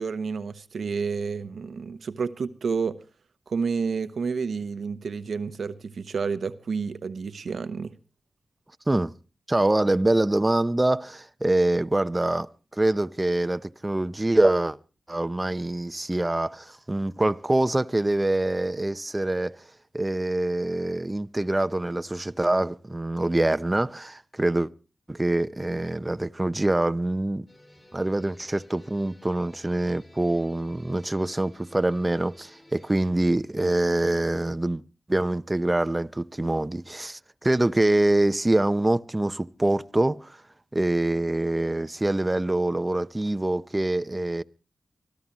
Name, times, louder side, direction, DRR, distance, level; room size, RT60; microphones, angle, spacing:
voice 1, 0.0-3.0 3.5-7.9, right 5 dB, 75° right, 0.9 m, -30 dB
voice 2, 9.5-14.8 15.1-19.6 19.9-24.7 25.1-27.5 27.9-34.8 35.1-40.4 40.7-44.4, right 1 dB, 25° right, 0.7 m, -25 dB
sound 1, 27.5-33.1, left 1 dB, 30° left, 5.3 m, -54 dB
25.0 x 13.5 x 3.0 m
cardioid pair, 45°, 0 cm